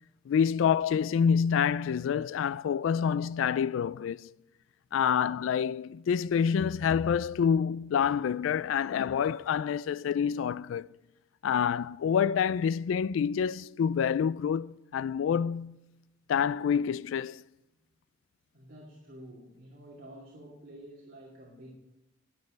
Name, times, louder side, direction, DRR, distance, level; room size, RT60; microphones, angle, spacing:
voice 1, 0.3-4.3 4.9-10.9 11.4-15.8 16.3-17.4, left 7 dB, 80° left, 0.3 m, -27 dB
voice 2, 18.5-21.7, right 1 dB, 50° right, 2.6 m, -49 dB
11.5 x 7.6 x 8.0 m
head